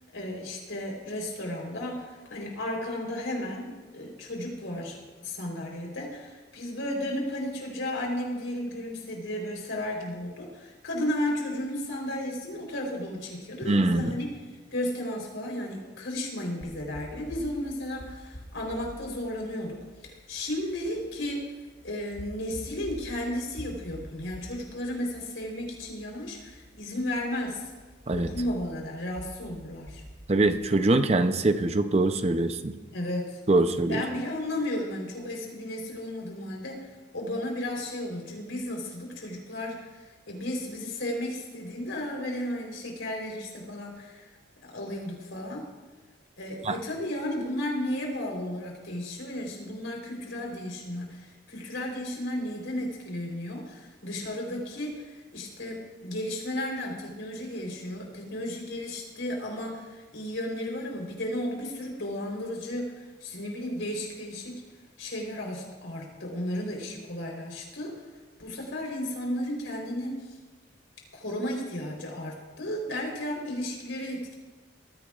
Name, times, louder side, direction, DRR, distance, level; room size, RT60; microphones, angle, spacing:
voice 1, 0.1-14.3 14.7-21.5 21.8-27.7 28.1-30.0 32.9-33.4 33.9-36.8 37.1-44.3 44.6-45.7 46.4-62.9 63.2-64.6 65.0-67.9 68.4-70.3 71.1-74.3, left 1 dB, 85° left, 0 dB, 3.8 m, -34 dB
voice 2, 13.7-14.2 28.1-28.3 30.3-32.7 33.5-34.0 46.6-46.8, right 2 dB, 35° right, 9 dB, 0.6 m, -23 dB
sound 1, 16.6-30.6, equal, 55° left, 3.2 m, -47 dB
19.5 x 15.0 x 2.4 m, 1.3 s
head